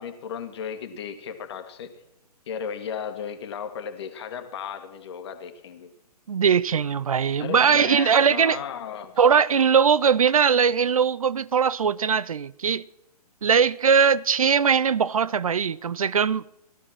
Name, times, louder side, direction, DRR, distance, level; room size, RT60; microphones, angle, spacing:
voice 1, 0.0-1.9 2.5-5.9 7.4-9.2, left 7 dB, 40° left, 2.0 m, -35 dB
voice 2, 6.3-8.6 9.2-12.8 13.4-16.4, right 6 dB, 60° right, 0.5 m, -20 dB
17.0 x 12.0 x 6.2 m
figure-of-eight pair, 125°, 20 cm